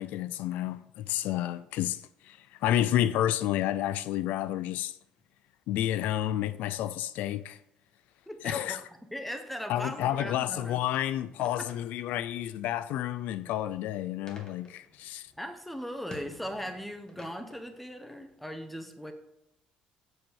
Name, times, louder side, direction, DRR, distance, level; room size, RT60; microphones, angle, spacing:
voice 1, 0.0-4.9 5.7-7.6 8.4-8.8 9.7-15.3, left 12 dB, 80° left, 0.4 m, -30 dB
voice 2, 8.3-8.8 9.1-10.8 11.5-11.7 15.4-19.1, equal, 5° left, 1.0 m, -39 dB
sound 1, 11.3-18.3, left 2 dB, 30° left, 1.7 m, -53 dB
7.8 x 4.5 x 7.0 m
cardioid pair, 125°, 3 cm